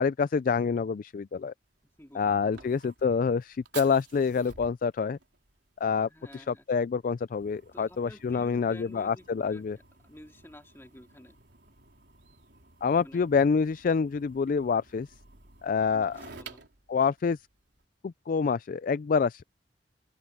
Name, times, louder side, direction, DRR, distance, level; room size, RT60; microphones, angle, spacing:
voice 1, 0.0-1.5 2.1-5.2 5.8-9.8 12.8-15.1 15.6-16.2 16.9-17.4 18.0-19.4, left 5 dB, 50° left, 0.3 m, -27 dB
Fire, 1.6-17.8, right 5 dB, 75° right, 4.0 m, -52 dB
voice 2, 2.0-2.7 6.1-6.7 7.7-9.7 10.0-11.4 13.0-13.3 15.9-16.7, left 1 dB, 15° left, 2.4 m, -51 dB
open air
head